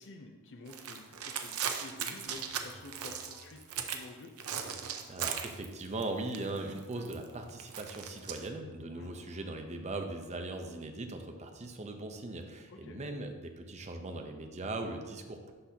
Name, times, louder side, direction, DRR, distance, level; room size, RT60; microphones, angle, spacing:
voice 1, 0.0-4.3 8.8-9.1 12.7-13.0, left 2 dB, 60° left, 3 dB, 0.7 m, -50 dB
sound 1, 0.7-4.1 4.4-6.0 6.3-8.5, right 8 dB, 85° right, 0.6 m, -38 dB
sound 2, 1.9-10.0, equal, 40° left, 1.5 m, -59 dB
voice 2, 4.8-15.5, right 2 dB, 30° right, 4 dB, 0.7 m, -39 dB
12.0 x 4.1 x 2.8 m, 1.3 s
head